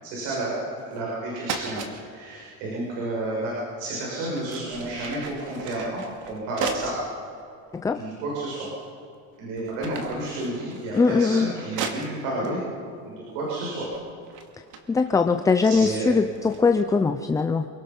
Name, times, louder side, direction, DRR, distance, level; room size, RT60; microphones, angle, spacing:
voice 1, 0.0-6.0 6.3-6.9 7.9-8.7 9.4-12.6 13.1-13.9 15.6-16.1, right 2 dB, 85° right, -5 dB, 6.7 m, -31 dB
sound 1, 0.8-1.1 1.4-1.9 3.6-3.7 4.2-7.0 7.7-7.8 8.5-9.0 9.4-12.5 13.4-13.6 13.9-16.9, right 5 dB, 55° right, 2.3 m, -37 dB
voice 2, 10.9-11.5 14.9-17.7, left 4 dB, 10° left, 7 dB, 0.4 m, -21 dB
28.0 x 17.5 x 5.5 m, 2.5 s
cardioid pair, 140°, 37 cm